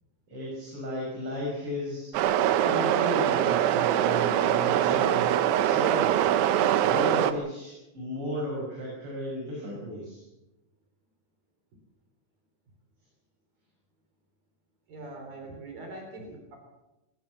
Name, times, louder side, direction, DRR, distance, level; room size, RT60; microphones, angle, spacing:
voice 1, 0.3-2.1 2.4-5.3 5.6-6.3 6.8-10.2, equal, 35° right, -4 dB, 7.2 m, -34 dB
sound 1, 2.1-7.3, right 11 dB, 90° right, 3.1 m, -23 dB
voice 2, 14.9-16.6, right 2 dB, 60° right, 3 dB, 5.0 m, -42 dB
21.0 x 17.5 x 7.2 m, 0.97 s
omnidirectional pair, 4.6 m